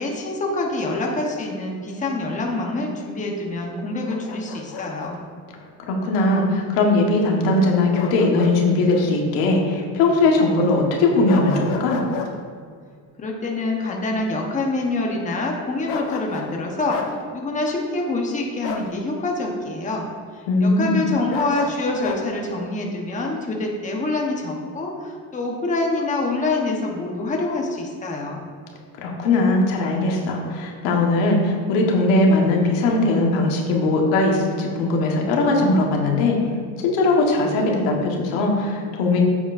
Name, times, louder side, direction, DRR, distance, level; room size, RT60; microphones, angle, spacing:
voice 1, 0.0-5.2 13.2-20.1 20.3-28.5, left 2 dB, 20° left, 0 dB, 1.0 m, -26 dB
Bark, 4.1-5.1 8.0-8.6 8.9-9.1 11.3-12.3 15.9-16.5 16.9-17.1 18.6-18.9 21.3-22.2, left 5 dB, 65° left, 1.0 m, -31 dB
voice 2, 5.9-12.0 20.5-21.0 29.0-36.4 36.8-39.2, left 2 dB, 90° left, 0 dB, 1.5 m, -19 dB
8.9 x 7.0 x 2.6 m, 2.1 s
cardioid pair, 125°, 38 cm